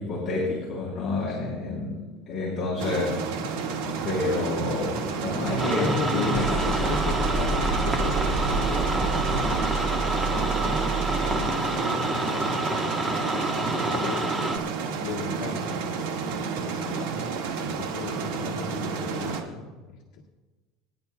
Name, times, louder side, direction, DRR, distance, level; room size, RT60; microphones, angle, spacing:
voice 1, 0.0-3.2 4.0-6.5 16.9-17.2, left 2 dB, 30° left, -7 dB, 3.8 m, -29 dB
voice 2, 1.1-1.5 5.5-14.6 15.0-15.6 16.2-16.9 17.5-20.2, left 5 dB, 60° left, -4 dB, 1.9 m, -37 dB
sound 1, 2.8-19.4, right 5 dB, 80° right, 1.8 m, -31 dB
sound 2, 3.7-11.6, right 3 dB, 35° right, 2.5 m, -30 dB
sound 3, 5.6-14.6, right 2 dB, 10° right, 1.1 m, -28 dB
29.0 x 10.5 x 2.3 m, 1.3 s
cardioid pair, 155°, 0 cm